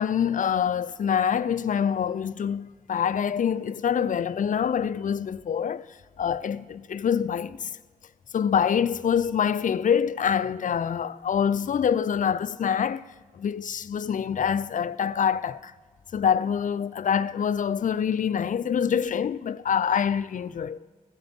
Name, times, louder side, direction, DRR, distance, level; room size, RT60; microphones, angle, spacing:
voice 1, 0.0-5.9 6.2-7.7 8.3-13.0 13.3-15.7 16.1-20.8, left 8 dB, 60° left, 0.4 m, -25 dB
16.5 x 7.6 x 3.6 m
cardioid pair, 45°, 15 cm